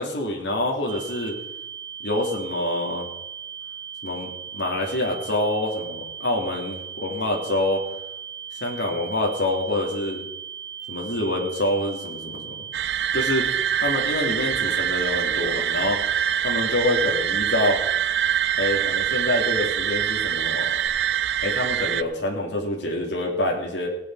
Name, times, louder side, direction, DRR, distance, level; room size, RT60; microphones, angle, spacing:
voice 1, 0.0-1.4 2.0-3.1 4.0-7.8 8.6-10.2 10.9-12.6 13.1-13.5 13.8-16.0 16.4-17.8 18.6-20.8 21.4-23.9, left 1 dB, 70° left, 0 dB, 2.7 m, -26 dB
sound 1, 0.9-20.9, right 8 dB, 40° right, 4.1 m, -37 dB
sound 2, 12.7-22.0, right 10 dB, 70° right, 0.5 m, -24 dB
18.5 x 8.7 x 4.8 m, 0.90 s
head